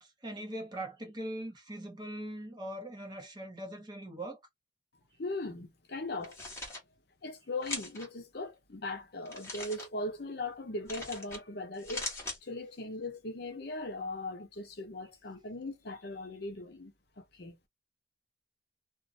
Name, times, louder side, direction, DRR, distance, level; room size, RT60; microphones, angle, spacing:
voice 1, 0.0-4.4, right 1 dB, 20° right, 0.7 m, -41 dB
voice 2, 5.2-6.4 7.2-12.1 12.4-17.6, left 2 dB, 55° left, 0.7 m, -39 dB
sound 1, 6.2-6.8 7.6-8.1 9.3-9.9 10.9-11.4 11.7-12.4, left 2 dB, 15° left, 0.9 m, -40 dB
2.5 x 2.1 x 2.6 m
head